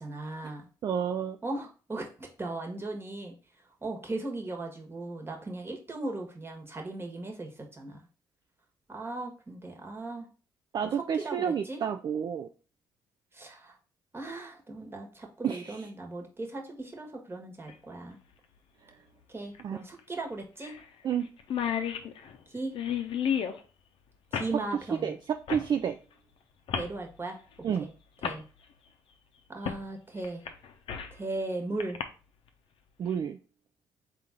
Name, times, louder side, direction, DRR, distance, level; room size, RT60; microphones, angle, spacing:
voice 1, 0.0-0.7 1.4-3.3 3.8-8.0 8.9-10.3 10.8-11.8 13.3-13.8 14.1-18.2 19.3-20.7 22.5-22.7 24.3-25.1 26.7-27.4 27.8-27.9 28.2-28.4 29.5-30.4 31.1-32.0, right 2 dB, 25° right, 2 dB, 1.2 m, -37 dB
voice 2, 0.8-1.4 10.7-12.5 15.4-15.8 19.6-19.8 21.0-21.3 25.0-26.0 27.6-27.9 33.0-33.4, right 8 dB, 50° right, 7 dB, 0.4 m, -30 dB
sound 1, 17.7-17.8 19.5-19.6 20.0-20.1 20.6-20.8 21.1-21.2 21.4-23.6 24.3-24.5 25.5-25.7 26.7-26.9 27.8-27.9 28.2-28.4 29.6-29.8 30.2-31.2 31.8-32.0, left 8 dB, 65° left, 0.6 m, -32 dB
3.8 x 2.5 x 4.2 m, 0.36 s
hypercardioid pair, 50°, 9 cm